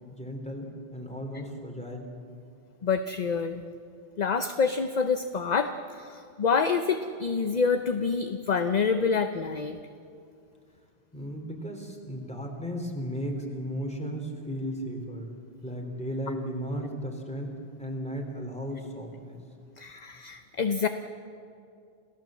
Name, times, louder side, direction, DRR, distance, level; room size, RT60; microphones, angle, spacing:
voice 1, 0.1-2.1 11.1-15.4 15.6-19.4, equal, 5° left, 2 dB, 3.2 m, -35 dB
voice 2, 2.8-3.6 4.2-9.8 19.8-20.9, left 5 dB, 45° left, 8 dB, 0.8 m, -27 dB
28.5 x 16.0 x 7.5 m, 2.4 s
omnidirectional pair, 1.1 m